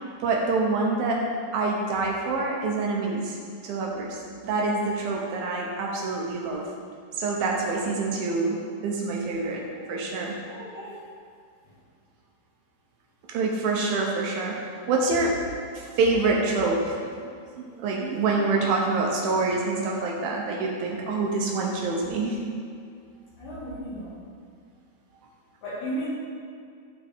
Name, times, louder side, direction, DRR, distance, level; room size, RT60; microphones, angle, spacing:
voice 1, 0.2-1.2 1.5-3.4 3.6-4.2 4.4-6.7 7.2-10.4 13.3-15.4 15.7-17.0 17.6-22.4, right 3 dB, 70° right, -1 dB, 2.4 m, -26 dB
voice 2, 10.5-11.1 11.7-11.8 23.4-24.2 25.6-26.1, right 1 dB, 55° left, -8 dB, 3.4 m, -35 dB
14.0 x 5.1 x 3.6 m, 2.2 s
omnidirectional pair, 4.9 m